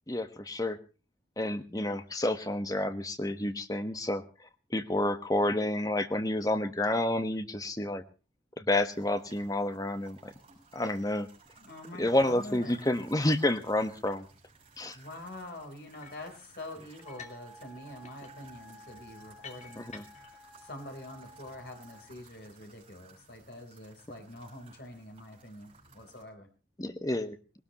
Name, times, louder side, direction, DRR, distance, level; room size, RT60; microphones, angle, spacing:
voice 1, 0.1-0.8 1.4-4.2 4.7-8.0 8.6-10.3 10.7-11.3 12.0-14.2 14.8-15.0 19.8-20.0 26.8-27.4, left 1 dB, 20° left, 9 dB, 1.3 m, -29 dB
sound 1, 8.8-26.2, right 4 dB, 30° right, 6.7 m, -59 dB
voice 2, 11.6-12.8 14.9-19.9 20.6-26.5, left 1 dB, 60° left, 3 dB, 4.1 m, -45 dB
sound 2, 16.0-16.3 17.0-17.5 17.8-20.4, left 6 dB, 40° left, 2.1 m, -51 dB
Wind instrument woodwind instrument, 17.0-22.2, equal, ahead, 5.2 m, -54 dB
19.5 x 18.5 x 3.0 m, 0.35 s
head